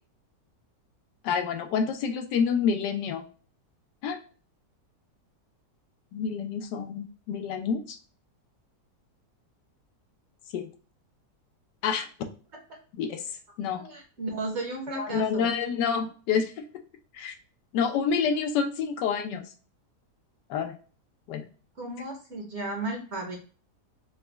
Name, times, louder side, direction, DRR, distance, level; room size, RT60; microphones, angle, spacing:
voice 1, 1.2-3.2 4.0-4.2 6.1-8.0 10.5-10.6 11.8-12.1 12.9-13.2 13.6-13.8 15.0-16.5 17.1-17.3 17.7-19.4 20.5-20.7 21.3-21.4, left 6 dB, 85° left, 6 dB, 1.3 m, -28 dB
voice 2, 13.8-15.5 21.8-23.4, right 2 dB, 50° right, 0 dB, 1.0 m, -34 dB
4.0 x 2.2 x 3.2 m, 0.38 s
omnidirectional pair, 1.8 m